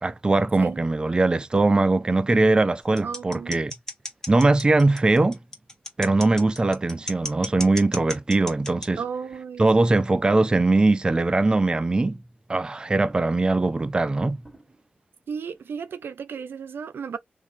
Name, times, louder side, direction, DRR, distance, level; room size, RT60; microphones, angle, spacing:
voice 1, 0.0-3.7 4.3-5.4 6.0-9.0 9.6-12.2 12.5-14.4, right 2 dB, 25° right, 0.4 m, -21 dB
sound 1, 3.0-8.9, left 1 dB, 15° left, 1.0 m, -33 dB
voice 2, 3.0-3.7 9.0-9.9 15.3-17.2, right 6 dB, 80° right, 0.5 m, -34 dB
sound 2, 11.8-12.5 13.1-13.7 14.1-14.2 14.4-15.0 15.5-15.8, right 2 dB, 10° right, 2.0 m, -57 dB
3.5 x 2.6 x 2.7 m
wide cardioid pair, 90°, 4 cm